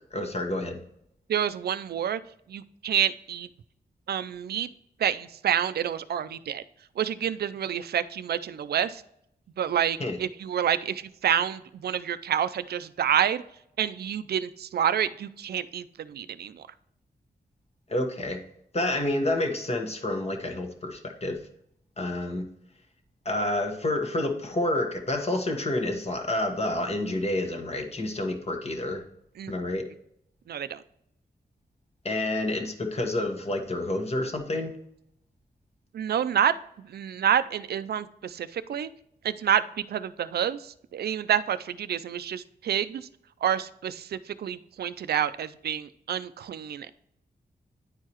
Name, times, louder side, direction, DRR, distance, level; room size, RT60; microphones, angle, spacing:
voice 1, 0.1-0.8 10.0-10.2 17.9-18.4 18.7-21.4 22.0-22.5 23.2-29.0 29.5-29.8 32.0-34.8, left 1 dB, 40° left, 4 dB, 1.3 m, -29 dB
voice 2, 1.3-2.2 2.5-3.5 4.1-4.7 5.0-6.6 7.0-9.0 9.6-13.4 13.8-16.6 29.4-29.5 30.5-30.8 35.9-36.5 36.8-38.9 39.2-43.1 43.4-46.9, right 9 dB, 75° right, 14 dB, 0.4 m, -28 dB
9.6 x 4.6 x 2.9 m, 0.75 s
cardioid pair, 85°, 17 cm